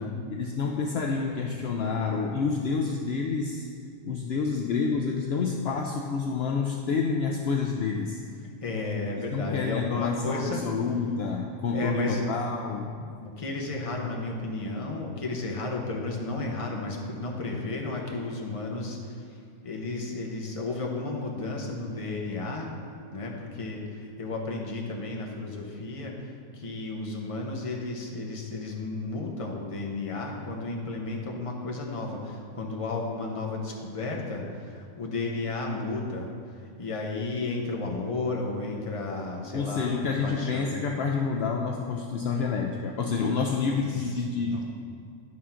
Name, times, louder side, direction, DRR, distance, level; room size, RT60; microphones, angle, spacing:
voice 1, 0.3-3.7 4.0-8.2 9.2-13.2 39.5-44.6, left 5 dB, 70° left, 1 dB, 0.6 m, -28 dB
voice 2, 8.6-10.6 11.7-12.3 13.2-22.7 23.1-39.9 40.2-40.7 43.8-44.1 44.4-44.6, left 3 dB, 30° left, 0 dB, 0.8 m, -33 dB
11.0 x 3.7 x 5.7 m, 2.3 s
omnidirectional pair, 1.6 m